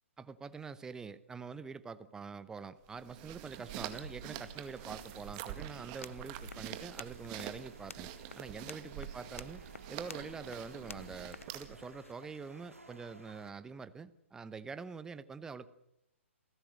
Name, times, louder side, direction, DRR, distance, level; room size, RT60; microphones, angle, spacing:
voice 1, 0.2-9.6 9.9-15.7, right 5 dB, 10° right, 14 dB, 0.8 m, -45 dB
sound 1, 2.9-11.9, right 12 dB, 30° right, 2.0 m, -46 dB
Train Station ambience, 3.5-13.5, right 2 dB, 85° right, 2.6 m, -54 dB
sound 2, 5.8-12.1, left 4 dB, 75° left, 0.7 m, -53 dB
28.0 x 16.0 x 6.6 m, 0.85 s
figure-of-eight pair, 125°, 7 cm